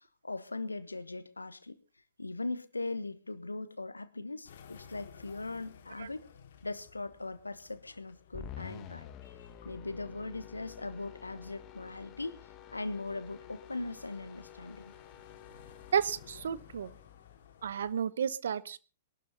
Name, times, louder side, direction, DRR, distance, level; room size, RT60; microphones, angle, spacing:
voice 1, 0.0-1.8 2.2-6.3 6.6-9.1 9.6-12.4 12.7-14.9, left 2 dB, 85° left, 1.2 m, -40 dB
sound 1, 4.4-17.9, left 7 dB, 60° left, 2.6 m, -57 dB
sound 2, 8.3-17.7, left 10 dB, 30° left, 1.9 m, -50 dB
voice 2, 15.9-16.9 17.6-18.8, right 8 dB, 65° right, 0.9 m, -32 dB
21.5 x 12.0 x 4.1 m
figure-of-eight pair, 105°, 0 cm